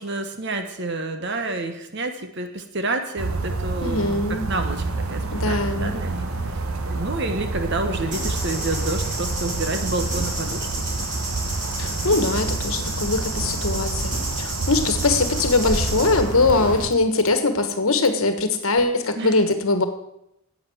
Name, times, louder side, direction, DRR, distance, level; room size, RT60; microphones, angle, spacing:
voice 1, 0.0-6.3 6.9-11.1 19.2-19.4, right 2 dB, 50° right, 7 dB, 1.2 m, -29 dB
sound 1, 3.2-16.9, right 3 dB, 75° right, 1.1 m, -28 dB
voice 2, 3.8-4.5 5.3-5.9 11.8-19.9, left 3 dB, 70° left, 8 dB, 1.4 m, -22 dB
sound 2, 4.5-16.9, equal, 10° right, 4.7 m, -38 dB
sound 3, 8.1-16.2, right 2 dB, 35° right, 3.6 m, -32 dB
10.5 x 8.7 x 7.8 m, 0.82 s
head